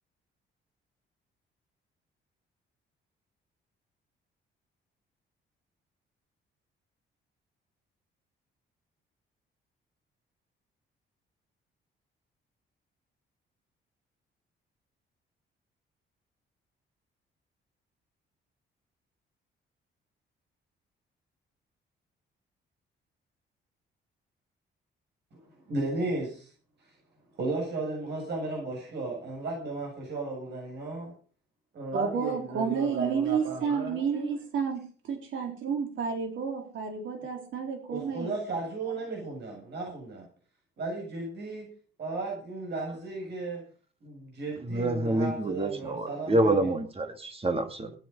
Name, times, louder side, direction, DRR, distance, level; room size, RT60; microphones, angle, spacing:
voice 1, 25.3-26.5 26.9-27.0 27.4-31.1 31.7-34.3 37.3-37.4 37.9-40.3 40.8-41.7 42.0-43.6 44.0-46.7, right 2 dB, 60° right, -2 dB, 7.7 m, -35 dB
voice 2, 31.9-38.3, right 6 dB, 75° right, 3 dB, 3.9 m, -31 dB
voice 3, 44.6-47.9, right 1 dB, 30° right, 8 dB, 2.5 m, -27 dB
18.5 x 9.5 x 5.6 m, 0.41 s
cardioid pair, 90°, 20 cm